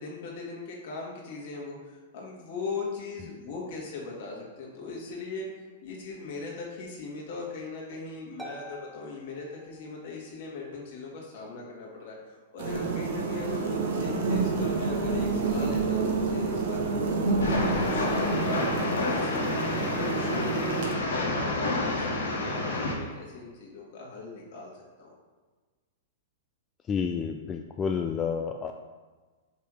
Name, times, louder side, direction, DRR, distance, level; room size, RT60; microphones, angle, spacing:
voice 1, 0.0-5.5 5.8-24.7 25.0-25.1, left 3 dB, 60° left, -3 dB, 1.8 m, -39 dB
Harp, 8.4-10.3, right 2 dB, 5° right, 0.7 m, -47 dB
sound 1, 12.6-20.9, right 3 dB, 60° right, 1.1 m, -28 dB
Train, 17.4-22.9, left 2 dB, 80° left, 1.2 m, -29 dB
voice 2, 26.9-28.7, left 6 dB, 25° left, 4 dB, 0.3 m, -30 dB
5.7 x 3.4 x 4.9 m, 1.4 s
hypercardioid pair, 115°, 0 cm